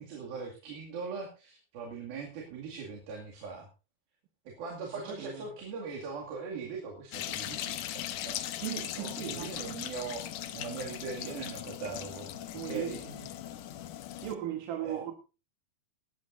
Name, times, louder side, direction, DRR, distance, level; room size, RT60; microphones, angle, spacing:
voice 1, 0.0-3.7 4.5-8.4 8.9-12.3 12.6-13.0 14.8-15.0, right 4 dB, 85° right, 4.2 m, -41 dB
voice 2, 5.1-5.4 8.6-9.8 12.5-12.9 14.2-15.2, right 11 dB, 70° right, 2.8 m, -37 dB
sound 1, 7.1-14.4, left 12 dB, 75° left, 2.2 m, -39 dB
19.5 x 12.5 x 2.6 m
omnidirectional pair, 4.1 m